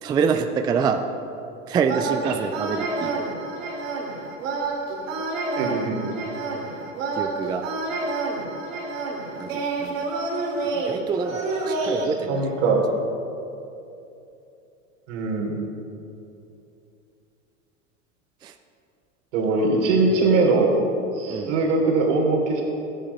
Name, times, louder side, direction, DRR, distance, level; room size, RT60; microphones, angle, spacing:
voice 1, 0.0-1.0 1.7-3.2 7.2-7.6 9.4-10.1 10.6-12.5 18.4-18.5 21.3-21.5, right 6 dB, 10° right, 7 dB, 0.3 m, -26 dB
sound 1, 1.8-12.0, right 3 dB, 85° right, 3.0 m, -29 dB
voice 2, 5.6-6.1 12.3-12.9 15.1-15.6 19.3-20.7 21.1-22.6, right 3 dB, 65° right, -1 dB, 3.4 m, -21 dB
14.0 x 10.0 x 5.5 m, 2.7 s
hypercardioid pair, 120°, 38 cm